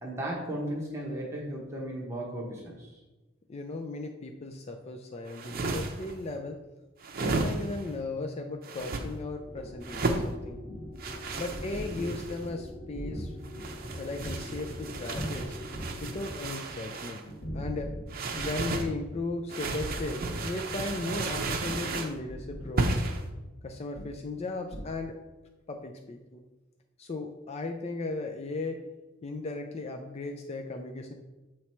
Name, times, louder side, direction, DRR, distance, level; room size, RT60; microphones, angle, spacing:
voice 1, 0.0-3.0, right 1 dB, 15° right, -3 dB, 1.0 m, -35 dB
voice 2, 3.5-6.6 7.2-10.6 11.4-13.4 14.0-15.6 16.0-17.2 17.5-17.9 18.4-23.0 23.6-25.2 25.7-26.4 27.0-28.8 29.2-31.1, left 2 dB, 30° left, 4 dB, 0.4 m, -36 dB
sound 1, 5.3-6.1 7.0-7.9 8.6-9.0 9.8-10.3 11.0-12.4 13.4-17.2 18.1-18.9 19.5-22.2 22.8-23.2, right 3 dB, 50° right, 0.6 m, -33 dB
sound 2, 9.4-16.3, left 1 dB, 10° left, 1.4 m, -45 dB
sound 3, 9.5-15.4 15.7-16.9 17.2-18.8 19.1-19.2 19.6-19.8 20.3-20.6 21.1-24.4 24.7-24.9, equal, 80° left, 1.2 m, -41 dB
7.0 x 3.2 x 4.4 m, 1.1 s
head